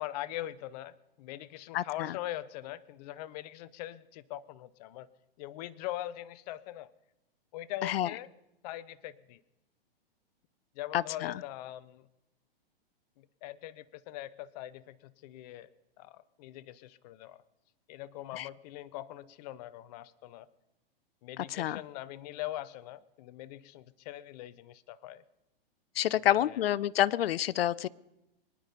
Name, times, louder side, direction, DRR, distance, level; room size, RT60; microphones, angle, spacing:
voice 1, 0.0-5.1 5.4-6.9 7.5-8.3 8.6-9.4 10.7-12.1 13.2-15.7 16.0-17.4 17.9-20.5 21.2-25.2 26.2-26.6, left 14 dB, 45° left, 17 dB, 0.7 m, -42 dB
voice 2, 1.7-2.2 7.8-8.1 10.9-11.3 18.3-18.5 21.4-21.8 26.0-27.9, left 12 dB, 75° left, 21 dB, 0.6 m, -28 dB
24.0 x 9.9 x 5.2 m, 0.92 s
hypercardioid pair, 130°, 30 cm